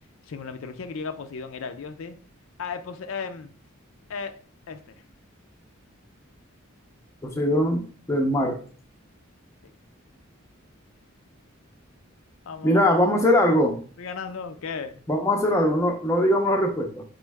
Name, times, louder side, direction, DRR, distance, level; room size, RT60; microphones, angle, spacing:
voice 1, 0.3-2.2 2.6-3.5 4.1-4.4 4.7-5.0 12.5-13.0 14.0-15.0, left 5 dB, 70° left, 7 dB, 0.5 m, -35 dB
voice 2, 7.2-8.6 12.6-13.8 15.1-17.0, left 1 dB, 15° left, 2 dB, 0.5 m, -21 dB
4.4 x 3.1 x 3.4 m, 0.42 s
head